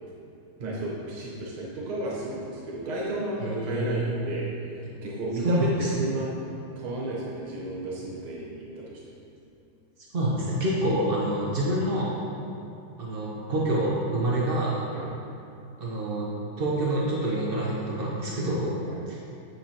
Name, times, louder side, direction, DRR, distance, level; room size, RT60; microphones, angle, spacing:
voice 1, 0.6-6.3 6.8-9.0 14.2-14.4 14.9-15.1 18.8-19.0, right 1 dB, 80° right, -4 dB, 2.0 m, -33 dB
voice 2, 3.4-4.1 5.4-5.9 10.1-12.1 13.0-14.9 15.8-16.3 16.6-18.8 19.1-19.2, right 1 dB, 65° right, -5 dB, 0.5 m, -27 dB
9.6 x 6.7 x 2.9 m, 2.7 s
omnidirectional pair, 2.3 m